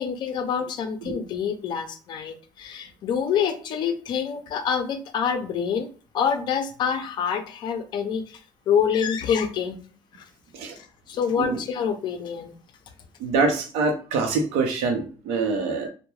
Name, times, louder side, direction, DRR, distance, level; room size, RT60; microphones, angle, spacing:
voice 1, 0.0-5.9 6.1-8.2 8.7-9.8 10.8-12.5, left 7 dB, 50° left, 8 dB, 0.4 m, -26 dB
voice 2, 13.2-15.9, right 4 dB, 85° right, 4 dB, 0.6 m, -25 dB
2.2 x 2.1 x 3.1 m, 0.38 s
cardioid pair, 130°, 10 cm